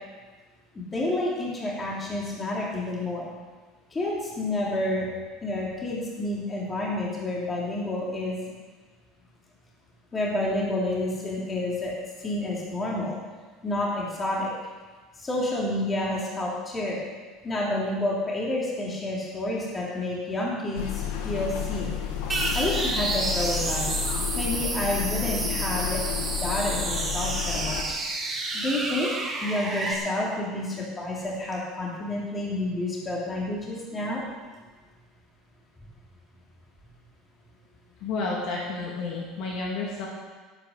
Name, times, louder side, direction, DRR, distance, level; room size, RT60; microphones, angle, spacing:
voice 1, 0.7-3.3 3.9-5.1 5.4-8.4 10.1-11.9 12.2-13.2 13.6-14.5 15.2-17.0 17.4-22.0 22.5-23.8 24.3-26.0 26.4-28.0 28.5-29.1 29.4-34.2, left 1 dB, 15° left, -4 dB, 2.8 m, -29 dB
sound 1, 20.8-27.8, left 9 dB, 75° left, 1.8 m, -31 dB
sound 2, 22.3-29.9, right 3 dB, 15° right, 2.0 m, -30 dB
voice 2, 38.0-40.1, left 3 dB, 50° left, -3 dB, 2.6 m, -31 dB
17.0 x 8.8 x 6.5 m, 1.4 s
cardioid pair, 180°, 0 cm